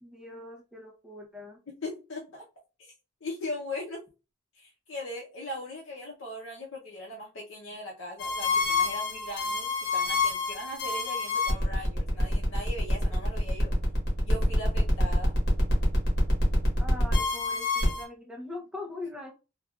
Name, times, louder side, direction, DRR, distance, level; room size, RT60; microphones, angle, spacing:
voice 1, 0.0-1.6 16.8-19.3, left 2 dB, 5° right, 0 dB, 0.6 m, -41 dB
voice 2, 1.7-2.4 2.8-2.9 3.2-4.0 4.5-13.7 14.2-15.3, left 1 dB, 70° left, -2 dB, 0.7 m, -39 dB
sound 1, 8.2-18.0, left 2 dB, 55° left, 1.3 m, -27 dB
3.2 x 2.4 x 2.3 m, 0.30 s
head